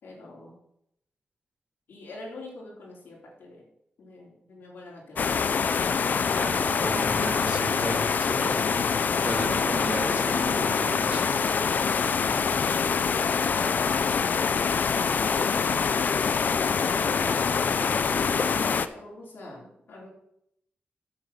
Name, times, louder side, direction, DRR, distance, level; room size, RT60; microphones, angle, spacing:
voice 1, 0.0-0.6 1.9-3.7 4.0-5.4 16.8-17.3 17.6-20.1, left 2 dB, 85° left, -3 dB, 3.7 m, -45 dB
sound 1, 5.2-18.9, left 6 dB, 55° left, 0.5 m, -25 dB
voice 2, 6.4-8.5 9.2-11.2, right 2 dB, 35° right, -1 dB, 2.8 m, -34 dB
8.0 x 6.7 x 5.9 m, 0.77 s
wide cardioid pair, 140°, 4 cm